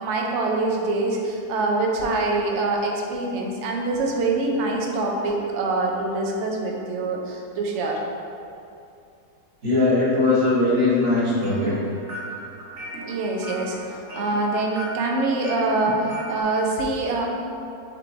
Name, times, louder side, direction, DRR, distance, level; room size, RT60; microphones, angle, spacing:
voice 1, 0.0-8.0 13.0-13.8 14.1-15.9 16.3-17.3, right 2 dB, 65° right, 0 dB, 0.8 m, -24 dB
voice 2, 9.6-11.8, left 2 dB, 40° right, -8 dB, 1.2 m, -20 dB
sound 1, 11.1-16.4, equal, 90° right, 1.4 m, -37 dB
6.5 x 3.2 x 2.5 m, 2.6 s
omnidirectional pair, 1.7 m